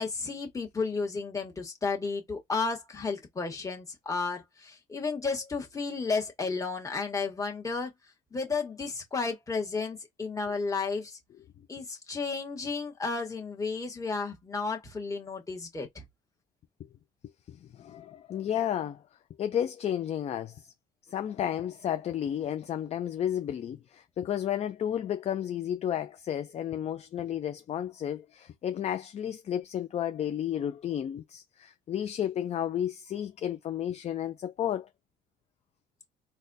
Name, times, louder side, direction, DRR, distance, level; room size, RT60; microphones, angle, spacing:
voice 1, 0.0-7.9 8.3-11.2 11.7-16.0, left 4 dB, 20° left, 1.3 m, -33 dB
voice 2, 17.5-19.0 19.4-20.7 21.1-34.9, left 10 dB, 40° left, 0.4 m, -32 dB
4.1 x 2.2 x 2.6 m
cardioid pair, 110°, 17 cm